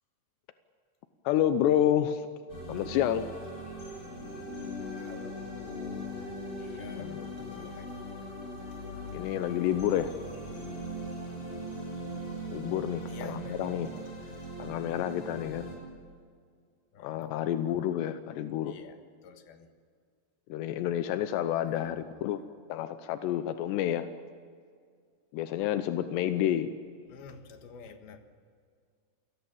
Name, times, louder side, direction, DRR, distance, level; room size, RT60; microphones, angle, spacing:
voice 1, 1.2-2.3 2.7-3.3 7.0-7.7 9.1-10.1 12.5-14.0 14.6-15.7 17.0-18.8 20.5-22.4 22.7-24.1 25.3-26.7, left 11 dB, 85° left, 10 dB, 3.0 m, -29 dB
sound 1, 2.5-15.8, equal, 30° left, 7.3 m, -40 dB
voice 2, 4.9-6.2 6.6-7.2 7.5-8.1 13.1-14.1 16.9-17.2 17.5-17.6 18.6-19.0 19.2-19.7 21.8-22.2 27.1-28.2, left 6 dB, 70° left, 7 dB, 3.2 m, -50 dB
28.0 x 20.0 x 7.3 m, 2.1 s
omnidirectional pair, 4.8 m